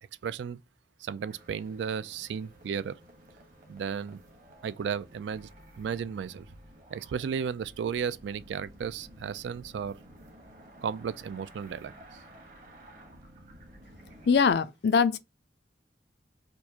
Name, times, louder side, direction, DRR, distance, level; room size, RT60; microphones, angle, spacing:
voice 1, 0.2-0.6 1.0-3.0 3.7-4.2 4.6-5.5 5.8-6.5 6.9-10.0 10.8-11.9, right 7 dB, 75° right, 0.3 m, -34 dB
sound 1, 1.3-14.5, equal, 45° right, 1.2 m, -53 dB
voice 2, 14.3-15.2, left 5 dB, 65° left, 0.4 m, -22 dB
4.5 x 2.4 x 2.8 m
head